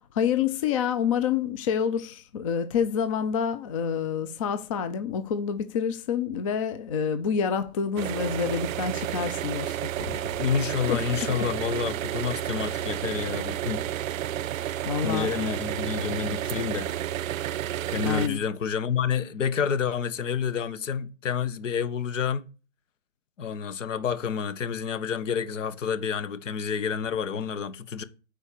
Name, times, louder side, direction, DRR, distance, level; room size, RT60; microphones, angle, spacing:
voice 1, 0.1-10.4 10.9-11.0 11.3-11.4 14.8-15.3 18.0-18.4, left 7 dB, 25° left, 0.5 m, -28 dB
sound 1, 8.0-18.3, right 12 dB, 75° right, 0.5 m, -31 dB
voice 2, 10.4-13.8 15.0-16.9 17.9-22.5 23.4-28.0, left 7 dB, 65° left, 1.4 m, -29 dB
9.5 x 4.5 x 6.8 m
hypercardioid pair, 140°, 41 cm